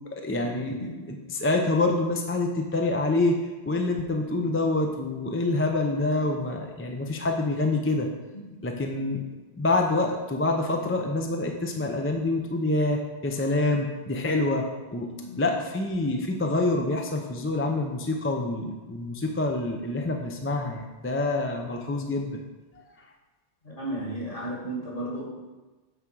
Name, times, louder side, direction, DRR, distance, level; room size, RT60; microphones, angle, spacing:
voice 1, 0.1-0.8 1.1-3.4 3.7-8.1 8.6-9.2 9.6-14.7 14.9-15.1 15.4-22.4 22.8-22.9, left 2 dB, 15° left, 2 dB, 0.5 m, -26 dB
voice 2, 0.8-1.1 8.3-8.5 15.2-15.4 23.6-25.3, right 1 dB, 50° left, -4 dB, 2.2 m, -34 dB
8.9 x 3.7 x 6.1 m, 1.2 s
omnidirectional pair, 1.1 m